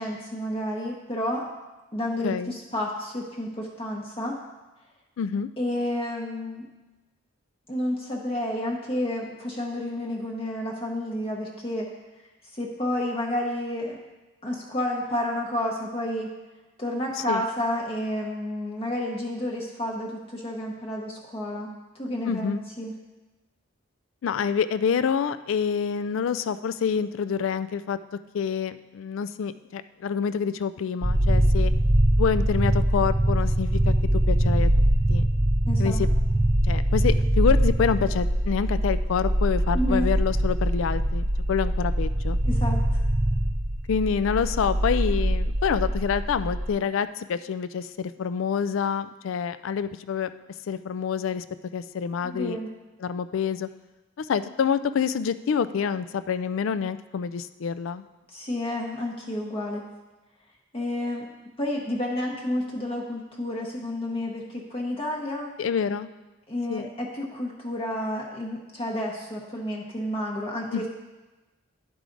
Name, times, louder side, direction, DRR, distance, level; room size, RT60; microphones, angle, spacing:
voice 1, 0.0-1.5 1.9-4.4 5.6-6.7 7.7-11.9 12.6-14.0 14.4-16.3 16.8-21.7 21.9-22.9 35.7-36.0 39.7-40.0 42.4-43.0 52.3-52.7 58.3-59.8 60.7-61.3 61.6-65.5 66.5-70.9, left 1 dB, 30° left, -1 dB, 0.8 m, -30 dB
voice 2, 2.2-2.5 5.2-5.5 17.3-17.5 22.2-22.6 24.2-28.0 28.3-31.7 32.2-33.9 34.3-35.3 35.8-36.1 36.6-42.4 43.9-50.3 50.7-51.4 51.7-52.6 53.0-53.7 54.2-58.0 65.6-66.1 66.7-66.9 70.7-70.9, left 6 dB, 70° left, 13 dB, 0.4 m, -27 dB
sound 1, 31.0-46.7, right 1 dB, 20° right, 0.6 m, -23 dB
10.5 x 4.8 x 3.8 m, 1.1 s
head